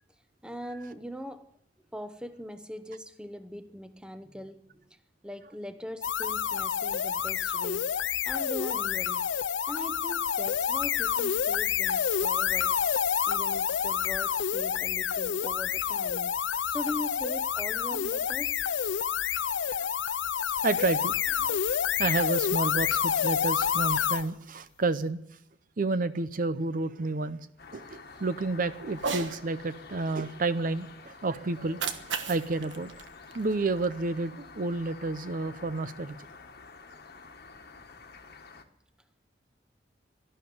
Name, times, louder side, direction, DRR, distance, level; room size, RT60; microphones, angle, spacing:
voice 1, 0.4-1.5 1.9-4.9 5.2-7.9 8.2-9.3 9.7-12.8 13.2-18.6, equal, 5° right, 0.8 m, -41 dB
sound 1, 6.0-24.3, left 8 dB, 75° left, 0.5 m, -28 dB
voice 2, 20.6-25.2 25.8-27.4 27.7-31.9 32.3-32.9 33.3-36.2, right 3 dB, 45° right, 0.6 m, -30 dB
sound 2, 27.6-38.6, left 4 dB, 55° left, 1.4 m, -49 dB
Cat, 28.9-29.4 31.5-33.9, right 5 dB, 80° right, 1.4 m, -36 dB
12.0 x 12.0 x 9.4 m
head